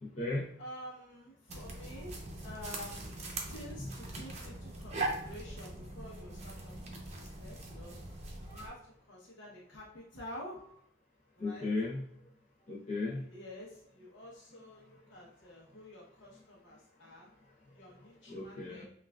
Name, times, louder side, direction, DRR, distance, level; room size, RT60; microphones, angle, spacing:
voice 1, 0.0-0.5 3.8-3.9 8.5-8.6 11.4-12.0 12.7-13.2 18.3-18.8, left 2 dB, 35° left, -5 dB, 0.7 m, -35 dB
voice 2, 0.6-3.2 3.5-8.0 8.5-8.8 9.1-10.6 11.3-11.7 13.0-17.3 17.7-18.8, left 1 dB, 70° left, -3 dB, 0.8 m, -49 dB
sound 1, 1.5-8.7, right 2 dB, 35° right, 0.6 m, -41 dB
5.7 x 2.4 x 2.3 m, 0.70 s
head